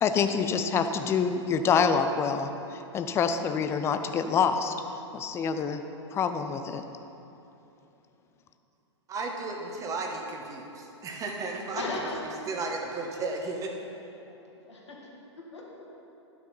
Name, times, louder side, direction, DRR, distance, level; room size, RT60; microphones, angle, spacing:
voice 1, 0.0-4.7 5.1-5.8 6.1-6.8, left 6 dB, 15° left, 8 dB, 0.5 m, -26 dB
voice 2, 9.1-11.9 12.2-13.7, right 3 dB, 20° right, 1 dB, 1.3 m, -34 dB
voice 3, 11.8-12.4 14.3-15.0 15.4-15.9, left 2 dB, 70° left, -3 dB, 2.2 m, -37 dB
12.5 x 6.2 x 5.6 m, 2.9 s
figure-of-eight pair, 105°, 15 cm